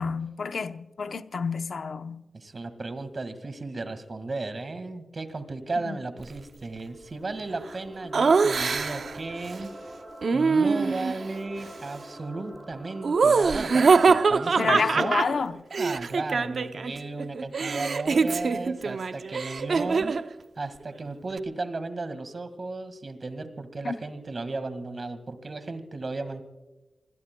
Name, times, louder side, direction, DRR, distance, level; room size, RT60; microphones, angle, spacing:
voice 1, 0.0-2.2 5.8-6.0 14.6-15.6 23.8-23.9, left 5 dB, 75° left, 0.7 m, -29 dB
voice 2, 2.3-9.7 10.3-15.3 15.8-20.2 20.6-26.4, right 3 dB, 45° right, 1.8 m, -35 dB
sound 1, 6.6-14.0, right 1 dB, 15° right, 7.5 m, -45 dB
Laughter, 8.1-9.2 10.2-11.2 13.0-16.9 17.2-20.3, right 4 dB, 70° right, 0.6 m, -23 dB
27.5 x 21.5 x 2.2 m
wide cardioid pair, 110°, 0 cm